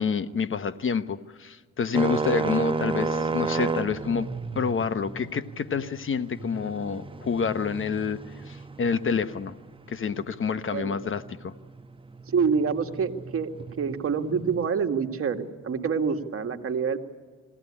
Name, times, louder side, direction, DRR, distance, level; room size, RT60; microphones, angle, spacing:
voice 1, 0.0-4.3 4.5-8.2 8.5-9.5 9.9-11.5, left 6 dB, 40° left, 12 dB, 1.0 m, -28 dB
sound 1, 1.9-14.7, right 3 dB, 15° right, 1.0 m, -33 dB
voice 2, 12.3-13.5 13.8-17.0, right 6 dB, 50° right, 5 dB, 2.0 m, -26 dB
22.0 x 16.5 x 9.9 m, 1.5 s
cardioid pair, 90°, 30 cm